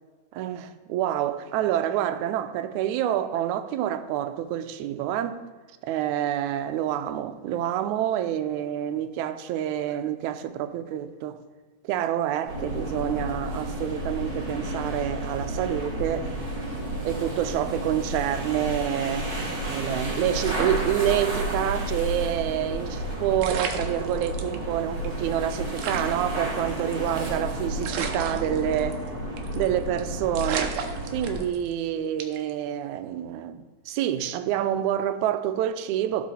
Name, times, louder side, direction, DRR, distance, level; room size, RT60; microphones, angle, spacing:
voice 1, 0.3-5.4 5.8-11.4 11.8-16.3 17.0-19.4 19.6-29.1 29.6-30.8 31.1-36.3, right 11 dB, 90° right, 2.0 m, -27 dB
sound 1, 12.5-31.4, right 1 dB, 45° right, 3.1 m, -31 dB
sound 2, 20.4-21.6 21.9-22.0 23.0-23.1 23.4-24.6 25.0-25.1 25.3-25.4 25.8-27.3 27.8-29.1 29.4-29.7 30.0-30.1 30.3-31.7 32.2-32.5, right 6 dB, 70° right, 1.8 m, -33 dB
14.0 x 4.7 x 4.1 m
omnidirectional pair, 3.3 m